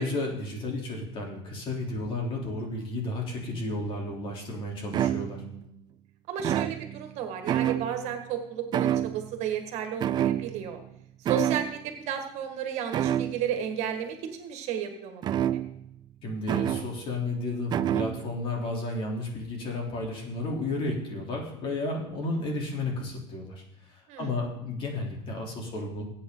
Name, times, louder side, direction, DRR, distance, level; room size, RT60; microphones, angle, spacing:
voice 1, 0.0-5.4 16.2-26.0, left 2 dB, 40° left, -1 dB, 3.5 m, -33 dB
sound 1, 4.2-4.3 4.9-5.6 6.4-7.2 7.5-8.2 8.7-9.5 10.0-10.9 11.3-11.8 12.9-13.5 15.2-16.0 16.5-17.0 17.7-18.3, right 11 dB, 30° right, 0.4 m, -28 dB
voice 2, 6.3-10.8 11.2-15.2 15.5-15.6 24.1-24.3, right 8 dB, 55° right, 6 dB, 1.9 m, -33 dB
19.5 x 8.8 x 4.0 m, 0.79 s
cardioid pair, 145°, 14 cm